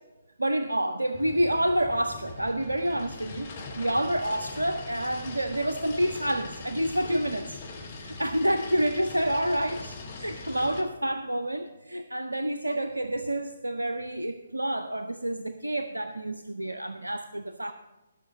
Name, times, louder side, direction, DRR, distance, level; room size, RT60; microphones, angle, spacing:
voice 1, 0.4-7.6 8.0-17.7, right 1 dB, 85° right, 9 dB, 0.6 m, -28 dB
sound 1, 1.1-10.8, left 3 dB, 45° left, 2.2 m, -41 dB
14.5 x 6.4 x 5.9 m, 1.1 s
figure-of-eight pair, 135°, 0 cm